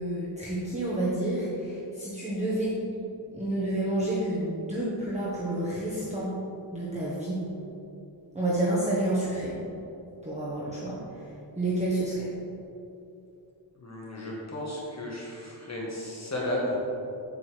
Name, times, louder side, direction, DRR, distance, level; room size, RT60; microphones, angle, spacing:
voice 1, 0.0-2.8 3.3-6.3 6.7-7.4 8.3-9.6 10.2-12.3, right 1 dB, 15° right, -8 dB, 1.3 m, -29 dB
voice 2, 13.8-16.8, left 1 dB, 35° left, -4 dB, 1.4 m, -33 dB
8.3 x 7.9 x 3.4 m, 2.8 s
wide cardioid pair, 125°, 46 cm